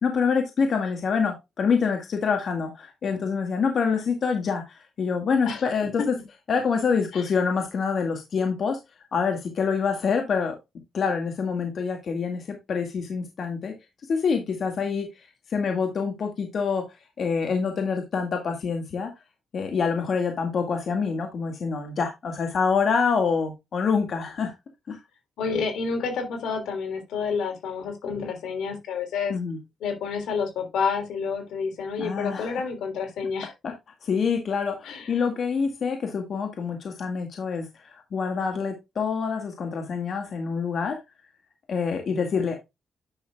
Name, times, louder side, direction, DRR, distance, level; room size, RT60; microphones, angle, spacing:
voice 1, 0.0-6.0 6.5-8.8 9.1-10.6 10.9-13.7 14.1-15.1 15.5-16.8 17.2-19.1 19.5-24.5 24.9-25.0 29.3-29.6 32.0-32.5 33.6-33.7 34.0-41.0 41.7-42.5, left 5 dB, 60° left, 3 dB, 1.9 m, -26 dB
voice 2, 25.4-29.3 29.8-33.5 34.8-35.1, left 5 dB, 85° left, 4 dB, 3.4 m, -29 dB
9.9 x 6.5 x 2.3 m, 0.22 s
cardioid pair, 95°, 0 cm